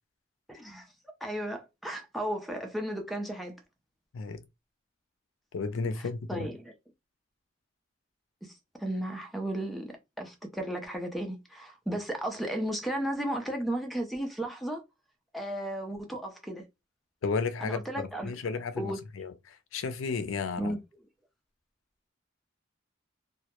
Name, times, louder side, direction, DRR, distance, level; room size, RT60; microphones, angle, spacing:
voice 1, 0.5-0.9 1.2-3.6 6.0-6.7 8.4-8.5 8.8-14.8 15.3-16.6 17.6-18.3 18.8-19.0 20.6-20.8, right 1 dB, ahead, 0.4 m, -34 dB
voice 2, 5.5-6.5 17.2-20.7, left 4 dB, 80° left, 0.4 m, -33 dB
2.2 x 2.0 x 2.9 m
head